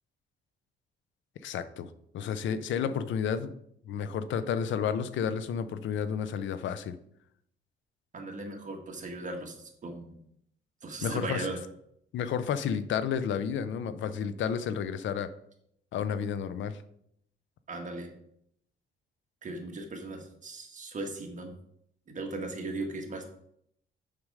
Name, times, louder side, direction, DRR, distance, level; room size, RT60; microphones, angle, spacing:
voice 1, 1.4-3.5 3.8-7.0 11.0-11.5 12.1-15.3 15.9-16.8, left 7 dB, 70° left, 12 dB, 0.6 m, -31 dB
voice 2, 8.1-10.1 10.8-11.6 17.7-18.1 19.4-21.5 22.1-23.3, right 2 dB, 40° right, 2 dB, 1.6 m, -37 dB
6.5 x 5.2 x 4.8 m, 0.72 s
cardioid pair, 90°, 20 cm